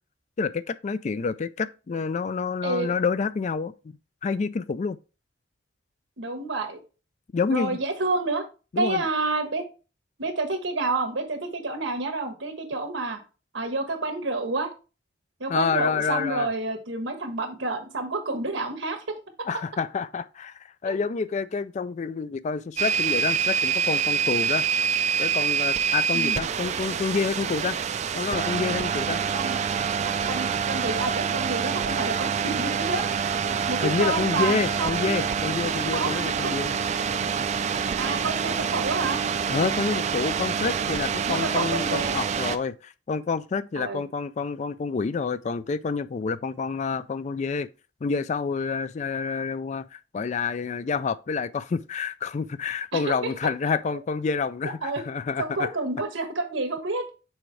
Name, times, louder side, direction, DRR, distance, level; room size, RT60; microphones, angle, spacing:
voice 1, 0.4-5.0 7.3-7.8 8.7-9.1 15.5-16.5 19.5-24.7 25.2-27.8 28.1-29.2 33.8-36.8 39.5-47.7 48.0-55.7, left 5 dB, 40° left, 0.3 m, -28 dB
voice 2, 2.6-2.9 6.2-6.8 7.5-8.4 8.8-9.7 10.2-13.2 13.5-14.7 15.4-19.2 20.8-20.9 26.1-26.4 29.3-29.6 30.0-33.1 33.7-35.2 35.9-36.5 38.0-39.2 41.3-42.2 43.8-44.1 52.9-53.3 54.8-55.0 55.4-57.0, right 3 dB, 80° right, 1.3 m, -29 dB
sound 1, 22.8-42.6, right 6 dB, 35° right, 0.4 m, -26 dB
6.3 x 4.6 x 3.2 m
head